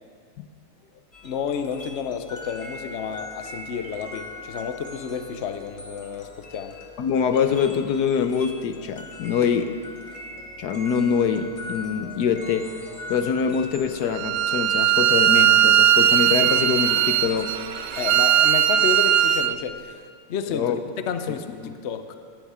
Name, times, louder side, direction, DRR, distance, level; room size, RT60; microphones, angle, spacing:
sound 1, 1.1-19.1, left 2 dB, 20° left, 0.9 m, -40 dB
voice 1, 1.2-6.7 17.9-20.7 21.1-22.1, left 7 dB, 80° left, 8 dB, 0.6 m, -31 dB
voice 2, 7.0-9.8 10.6-12.7 13.1-17.5 20.5-20.8 21.3-21.4 21.6-21.8, left 7 dB, 65° left, 9 dB, 1.1 m, -24 dB
Bowed string instrument, 14.1-19.5, right 11 dB, 80° right, 1.4 m, -19 dB
18.0 x 12.5 x 4.9 m, 2.1 s
omnidirectional pair, 2.3 m